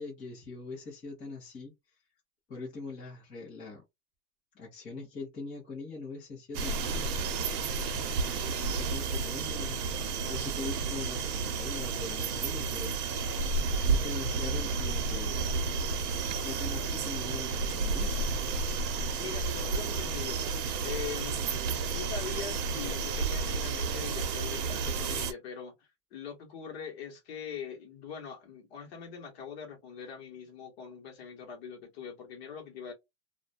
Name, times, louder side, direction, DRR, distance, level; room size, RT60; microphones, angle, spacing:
voice 1, 0.0-1.7 2.5-3.8 4.5-7.6 8.2-9.8 10.3-13.3 13.8-15.5 16.4-18.3, left 3 dB, 10° left, 0.6 m, -42 dB
sound 1, 6.5-25.3, right 4 dB, 85° right, 0.8 m, -31 dB
voice 2, 19.2-20.5 20.8-21.4 21.9-32.9, left 7 dB, 40° left, 1.1 m, -42 dB
2.4 x 2.2 x 2.4 m
supercardioid pair, 170°, 46 cm